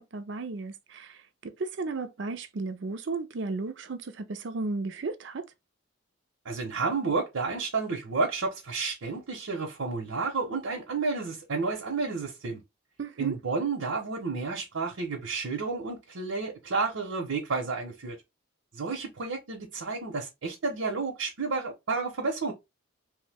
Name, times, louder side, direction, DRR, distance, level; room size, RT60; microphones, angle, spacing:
voice 1, 0.0-5.5 13.0-13.4, right 3 dB, 60° right, 0.5 m, -34 dB
voice 2, 6.4-12.6 13.2-18.2 18.7-22.5, right 4 dB, 80° right, 0.8 m, -31 dB
3.1 x 2.1 x 3.3 m
head